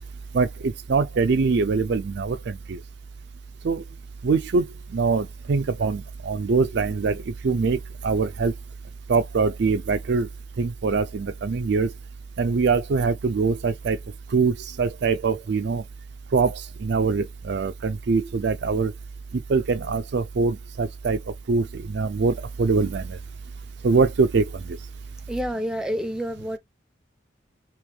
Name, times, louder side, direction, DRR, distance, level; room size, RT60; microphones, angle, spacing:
voice 1, 0.3-2.8 3.6-3.8 4.2-4.7 4.9-7.2 7.4-8.5 9.1-10.3 10.6-11.9 12.4-14.0 14.3-15.8 16.3-18.9 19.5-21.2 21.5-23.2 23.8-24.8, right 4 dB, 60° right, 0.4 m, -23 dB
voice 2, 25.3-26.6, equal, 5° right, 0.5 m, -28 dB
3.2 x 3.0 x 3.4 m
head